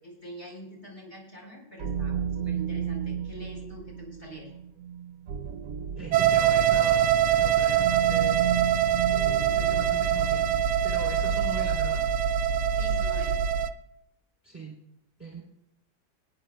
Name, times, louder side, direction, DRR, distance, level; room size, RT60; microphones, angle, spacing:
voice 1, 0.0-4.5 12.7-13.4, equal, 20° left, -3 dB, 4.6 m, -44 dB
sound 1, 1.8-11.0, right 8 dB, 70° right, 1.0 m, -34 dB
voice 2, 5.9-8.4 9.5-10.5 10.8-12.0 14.4-14.8 15.2-15.4, right 3 dB, 10° right, -3 dB, 3.1 m, -40 dB
sound 2, 6.1-13.7, right 9 dB, 85° right, 0.6 m, -24 dB
23.5 x 10.0 x 2.2 m, 0.82 s
omnidirectional pair, 1.9 m